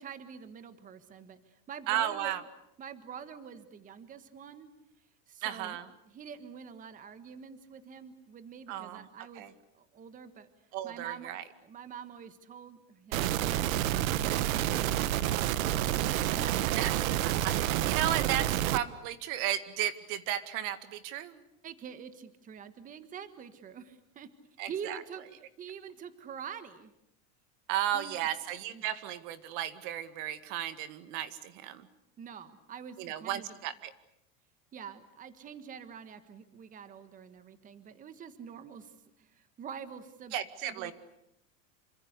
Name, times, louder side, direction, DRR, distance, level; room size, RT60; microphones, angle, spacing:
voice 1, 0.0-2.4 2.8-4.7 5.3-5.8 6.1-9.4 9.7-10.5 10.8-11.3 11.6-15.9 16.4-16.7 21.6-24.3 24.7-26.9 27.9-28.2 28.7-28.8 32.2-33.6 34.7-40.3 40.6-40.9, right 7 dB, 20° right, 12 dB, 1.5 m, -46 dB
voice 2, 1.9-2.4 5.4-5.9 8.7-9.1 9.4-9.5 10.7-11.4 16.8-16.9 17.2-21.4 24.6-25.0 27.7-31.9 33.0-33.9 40.3-40.9, right 12 dB, 45° right, 12 dB, 2.1 m, -34 dB
sound 1, 13.1-18.8, right 13 dB, 75° right, 1.4 m, -29 dB
28.0 x 25.5 x 8.2 m, 0.76 s
supercardioid pair, 165°, 41 cm